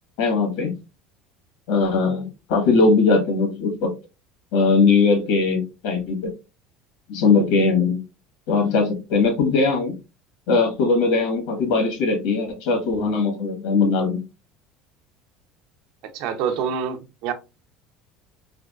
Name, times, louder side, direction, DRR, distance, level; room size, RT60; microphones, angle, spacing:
voice 1, 0.2-0.7 1.7-3.9 4.5-6.3 7.1-8.0 8.5-9.9 10.5-14.2, left 4 dB, 80° left, 1.4 m, -20 dB
voice 2, 16.1-17.3, right 7 dB, 65° right, 0.5 m, -26 dB
3.4 x 2.3 x 2.4 m
cardioid pair, 140°, 0 cm